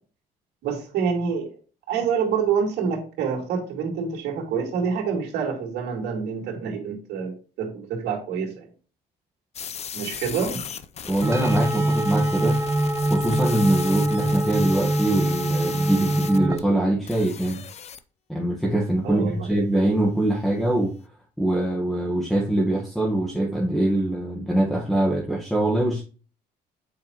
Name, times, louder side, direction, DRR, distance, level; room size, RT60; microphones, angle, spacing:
voice 1, 0.6-1.5 1.9-7.3 7.6-8.7 9.9-10.6 19.0-19.5, right 6 dB, 80° right, 1 dB, 2.3 m, -27 dB
sound 1, 9.5-16.6 17.1-18.0, left 7 dB, 40° left, 0.6 m, -37 dB
voice 2, 11.1-12.6 13.1-17.6 18.3-20.9 21.4-26.0, right 1 dB, ahead, -4 dB, 1.3 m, -23 dB
sound 2, 11.2-16.6, right 1 dB, 15° right, 0.6 m, -24 dB
7.5 x 4.8 x 2.9 m, 0.37 s
cardioid pair, 110°, 17 cm